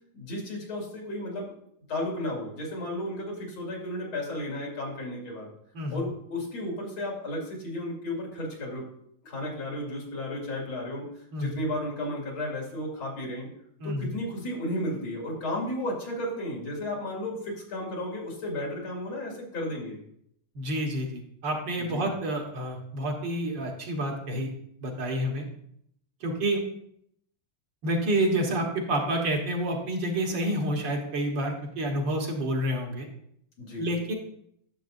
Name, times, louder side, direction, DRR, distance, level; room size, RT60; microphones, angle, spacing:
voice 1, 0.1-1.5 1.9-5.5 5.9-8.8 9.2-11.1 11.4-13.5 13.8-20.0 21.8-22.1 33.6-33.8, left 1 dB, 85° left, -2 dB, 3.2 m, -33 dB
voice 2, 20.6-24.5 24.8-25.4 26.2-26.6 27.8-33.1 33.8-34.1, right 1 dB, 65° right, 1 dB, 2.1 m, -29 dB
10.5 x 7.4 x 2.6 m, 0.69 s
omnidirectional pair, 2.2 m